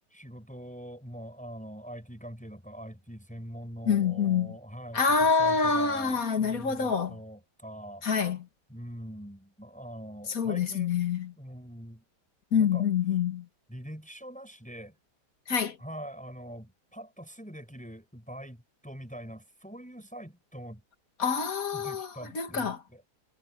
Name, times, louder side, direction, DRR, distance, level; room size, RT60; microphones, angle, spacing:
voice 1, 0.1-8.1 8.7-11.0 11.4-12.0 12.5-12.9 13.7-14.9 15.8-20.8 21.7-23.0, equal, 5° left, 6.6 m, -44 dB
voice 2, 3.9-4.5 4.9-7.1 8.0-8.4 10.4-11.3 12.5-13.4 15.5-15.8 21.2-22.1 22.4-22.8, left 6 dB, 55° left, 2.2 m, -26 dB
omnidirectional pair, 1.9 m